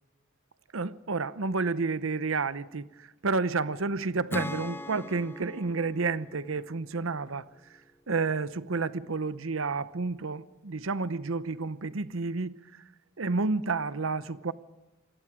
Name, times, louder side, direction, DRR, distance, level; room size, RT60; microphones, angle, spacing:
voice 1, 0.7-12.8 13.2-14.5, right 4 dB, 70° right, 0.8 m, -30 dB
Acoustic guitar / Strum, 4.3-7.8, left 1 dB, 10° left, 0.6 m, -40 dB
27.0 x 21.0 x 5.0 m
head